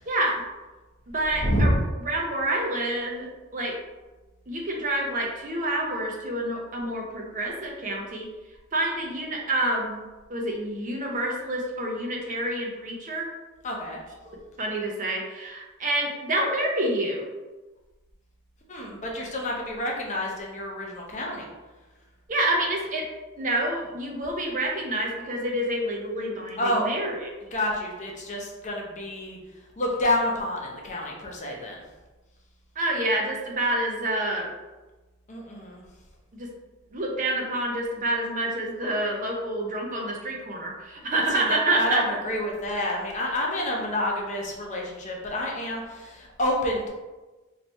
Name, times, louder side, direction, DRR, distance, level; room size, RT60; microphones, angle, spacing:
voice 1, 1.1-1.8 2.0-3.7 4.5-8.3 8.7-10.0 10.3-13.3 14.6-17.2 22.3-23.1 23.4-27.3 32.8-34.5 36.3-36.5 36.9-42.0, right 1 dB, 35° right, 0 dB, 0.6 m, -28 dB
voice 2, 13.6-14.0 18.7-21.4 26.6-26.9 27.5-29.4 29.8-31.8 35.3-35.8 41.3-46.9, left 1 dB, 35° left, -1 dB, 0.6 m, -28 dB
2.9 x 2.8 x 4.4 m, 1.2 s
head